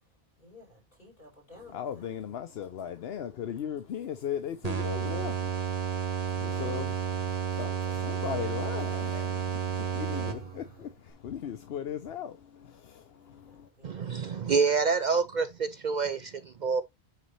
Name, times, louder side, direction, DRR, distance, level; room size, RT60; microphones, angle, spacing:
voice 1, 0.4-2.2 6.4-6.8 7.8-8.3 9.8-11.0 13.4-14.9, left 1 dB, 50° left, 5.3 m, -54 dB
voice 2, 1.7-5.6 6.3-13.7, left 9 dB, 75° left, 0.9 m, -38 dB
sound 1, 4.6-10.7, right 8 dB, 40° right, 1.3 m, -32 dB
voice 3, 13.8-16.8, right 5 dB, 55° right, 0.6 m, -27 dB
9.2 x 4.0 x 3.2 m
omnidirectional pair, 1.1 m